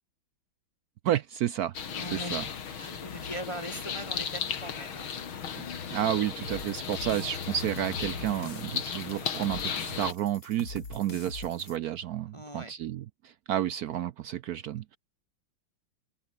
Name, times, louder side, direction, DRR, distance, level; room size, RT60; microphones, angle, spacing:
voice 1, 1.0-1.8 2.1-2.4 5.6-5.7 5.9-15.0, right 11 dB, 80° right, 0.8 m, -31 dB
sound 1, 1.7-10.1, left 7 dB, 85° left, 2.9 m, -36 dB
voice 2, 1.9-2.4 2.8-5.1 12.3-12.7, equal, 15° left, 2.1 m, -40 dB
sound 2, 6.4-11.8, left 4 dB, 65° left, 4.3 m, -44 dB
omnidirectional pair, 2.2 m